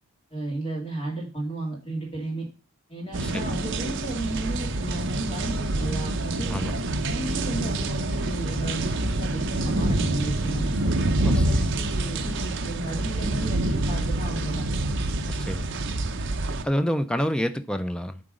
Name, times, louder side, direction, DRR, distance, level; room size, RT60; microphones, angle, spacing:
voice 1, 0.3-2.5 2.9-6.6 7.1-10.7 11.2-14.6, right 2 dB, 25° left, 2.4 m, -34 dB
sound 1, 3.1-16.6, right 2 dB, 55° right, 0.6 m, -26 dB
voice 2, 11.2-11.6 15.2-15.7 16.6-18.2, equal, 5° left, 0.4 m, -28 dB
7.7 x 3.9 x 5.0 m
head